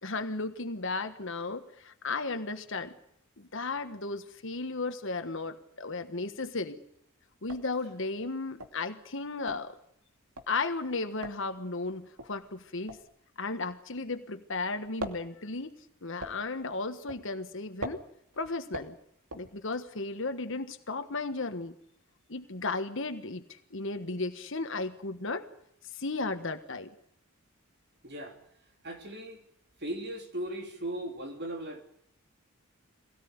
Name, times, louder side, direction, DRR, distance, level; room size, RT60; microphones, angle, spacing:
voice 1, 0.0-2.9 3.4-6.8 7.4-9.7 10.5-13.0 13.4-15.7 16.0-18.0 18.4-19.0 19.3-21.7 22.3-25.4 25.9-26.9, left 3 dB, 55° left, 8 dB, 1.4 m, -35 dB
sound 1, 6.1-6.6 7.0-7.1 7.3-14.4 14.7-20.0, right 1 dB, 85° right, 2.6 m, -43 dB
voice 2, 28.0-28.4 28.8-29.4 29.8-31.8, right 1 dB, 50° right, 5 dB, 3.1 m, -37 dB
23.0 x 17.5 x 9.6 m, 0.71 s
head